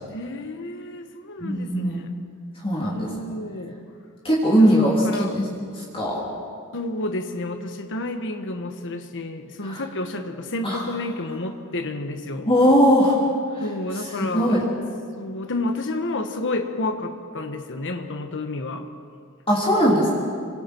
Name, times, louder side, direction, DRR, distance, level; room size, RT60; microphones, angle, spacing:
voice 1, 0.1-2.1 2.9-3.8 4.6-5.3 6.7-12.5 13.6-14.7 15.2-18.9, left 2 dB, 60° left, 6 dB, 1.3 m, -30 dB
voice 2, 1.4-2.0 2.6-3.1 4.2-5.4 5.7-6.2 9.6-9.8 10.6-10.8 12.5-13.2 13.5-13.6 14.2-14.6 19.5-20.1, equal, 25° left, -5 dB, 3.4 m, -19 dB
27.5 x 25.0 x 4.6 m, 2.3 s
head